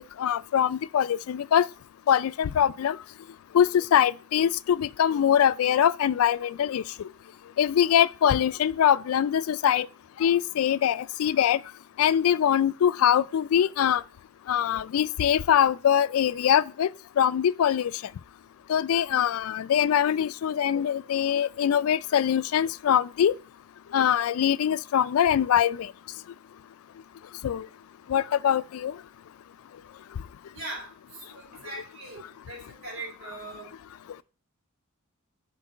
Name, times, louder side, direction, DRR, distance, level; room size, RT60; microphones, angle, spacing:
voice 1, 0.2-1.7 2.1-3.0 3.5-6.8 7.6-9.9 10.2-11.6 12.0-14.0 14.5-16.9 17.2-17.9 18.7-23.3 23.9-25.9 27.4-27.7 28.1-28.9, left 9 dB, 75° left, 0.3 m, -23 dB
voice 2, 30.5-30.9 31.3-33.7, right 2 dB, 70° right, 3.9 m, -40 dB
8.1 x 5.2 x 4.0 m
head